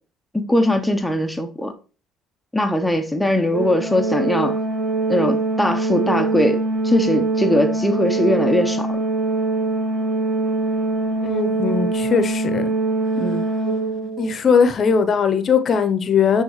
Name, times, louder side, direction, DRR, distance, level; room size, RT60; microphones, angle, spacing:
voice 1, 0.3-1.7 2.5-4.6 5.1-9.0 13.2-13.5, left 1 dB, 5° left, 0.9 m, -20 dB
Organ, 3.5-14.4, right 3 dB, 30° right, 1.8 m, -23 dB
voice 2, 11.2-12.7 14.2-16.4, left 6 dB, 45° left, 0.9 m, -19 dB
9.0 x 3.6 x 3.2 m
supercardioid pair, 70°, 0 cm